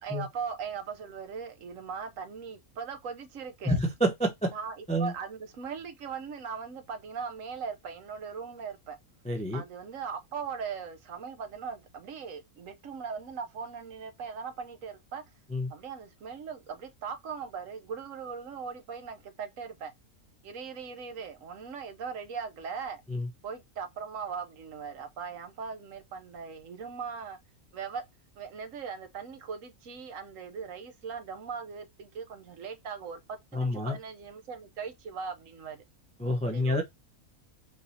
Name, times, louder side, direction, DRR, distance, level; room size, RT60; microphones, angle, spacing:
voice 1, 0.0-3.8 4.5-9.0 9.5-15.2 15.7-19.9 20.4-23.0 23.4-27.4 27.7-28.0 28.4-35.8 36.5-36.8, right 6 dB, 70° right, 1.0 m, -39 dB
voice 2, 3.6-4.5 4.9-5.1 9.2-9.6 15.5-15.7 23.1-23.3 33.5-34.0 36.2-36.8, equal, 10° left, 0.3 m, -28 dB
3.8 x 2.7 x 4.1 m
omnidirectional pair, 1.5 m